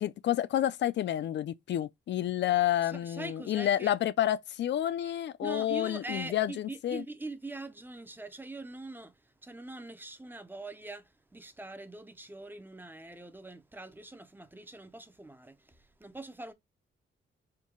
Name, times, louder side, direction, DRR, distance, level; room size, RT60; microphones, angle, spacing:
voice 1, 0.0-7.0, left 12 dB, 65° left, 0.4 m, -29 dB
voice 2, 2.8-3.9 5.4-9.2 9.4-16.5, right 2 dB, 10° right, 0.5 m, -43 dB
4.5 x 2.2 x 3.6 m
cardioid pair, 95°, 20 cm